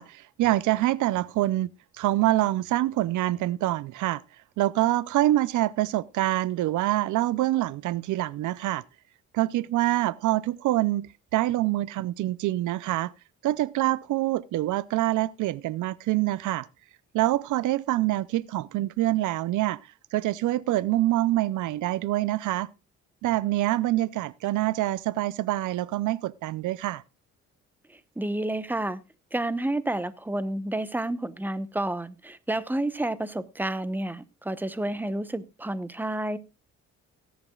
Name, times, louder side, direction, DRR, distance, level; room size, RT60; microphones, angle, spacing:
voice 1, 0.0-1.7 2.0-4.2 4.6-8.8 9.3-13.1 13.4-16.7 17.1-19.8 20.1-22.7 23.2-27.0, right 16 dB, 80° right, 0.5 m, -25 dB
voice 2, 27.9-29.0 29.3-36.4, right 1 dB, 5° right, 0.9 m, -30 dB
18.0 x 10.5 x 2.3 m
cardioid pair, 90°, 30 cm